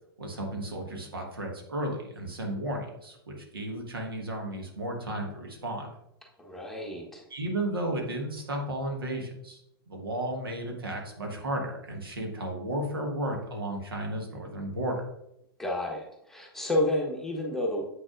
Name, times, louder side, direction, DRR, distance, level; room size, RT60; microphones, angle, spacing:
voice 1, 0.2-5.9 7.3-9.6 9.9-15.0, right 1 dB, 70° right, 1 dB, 1.6 m, -33 dB
voice 2, 6.4-7.2 15.6-17.8, left 1 dB, 5° left, -2 dB, 1.3 m, -30 dB
7.8 x 6.2 x 2.6 m, 0.80 s
figure-of-eight pair, 100°, 12 cm